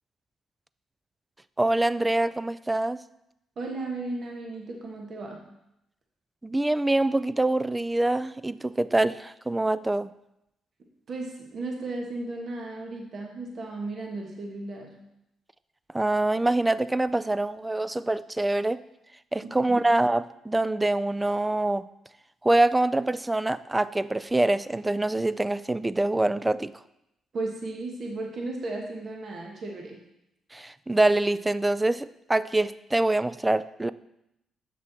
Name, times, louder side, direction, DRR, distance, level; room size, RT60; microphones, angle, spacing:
voice 1, 1.6-3.0 6.4-10.1 15.9-18.8 19.3-21.9 22.4-26.7 30.5-33.9, right 2 dB, 15° right, 16 dB, 0.3 m, -25 dB
voice 2, 3.6-5.4 11.1-15.0 19.4-19.8 27.3-30.0, right 2 dB, 50° right, 0 dB, 1.4 m, -35 dB
7.6 x 6.2 x 4.2 m, 0.84 s
cardioid pair, 90°, 0 cm